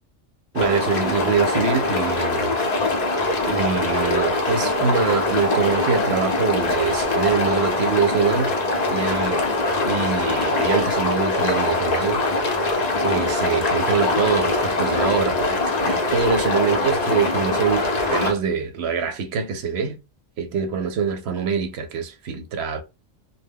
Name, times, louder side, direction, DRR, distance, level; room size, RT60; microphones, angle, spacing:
voice 1, 0.5-2.6 3.5-8.6 8.9-9.4 9.8-20.0 20.4-22.8, right 6 dB, 65° right, 0.8 m, -24 dB
sound 1, 0.6-18.3, left 2 dB, 45° left, 0.6 m, -22 dB
2.2 x 2.1 x 3.4 m
omnidirectional pair, 1.3 m